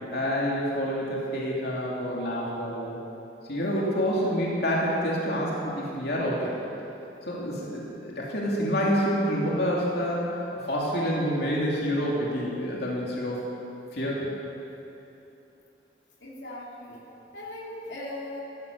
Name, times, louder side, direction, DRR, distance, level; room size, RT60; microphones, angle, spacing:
voice 1, 0.1-3.0 3.5-6.6 7.2-13.5 13.9-14.3, equal, 65° left, -4 dB, 2.8 m, -28 dB
voice 2, 16.2-17.0 17.3-18.4, left 1 dB, 85° left, -4 dB, 2.9 m, -38 dB
16.0 x 13.0 x 6.8 m, 2.9 s
head